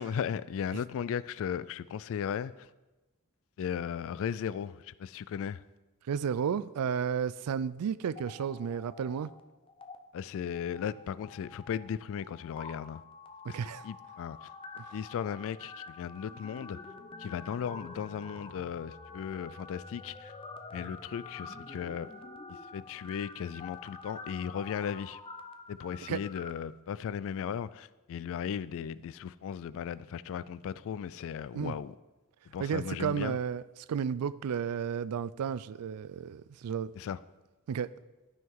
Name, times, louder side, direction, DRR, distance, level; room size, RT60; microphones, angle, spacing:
voice 1, 0.0-2.7 3.6-5.6 10.1-13.0 13.5-13.6 13.8-14.5 14.9-16.8 17.2-20.3 20.7-22.1 22.5-25.2 25.7-31.9 32.5-33.4 37.0-37.2, left 8 dB, 65° left, 0.3 m, -36 dB
voice 2, 6.1-9.3 13.5-13.8 14.8-14.9 26.1-26.2 31.5-31.7 32.6-33.6 33.9-36.9 37.7-37.9, right 7 dB, 85° right, 0.4 m, -32 dB
sound 1, 8.0-9.4 9.7-10.0 10.5-26.5, left 3 dB, 25° left, 0.6 m, -47 dB
12.0 x 5.7 x 4.6 m
head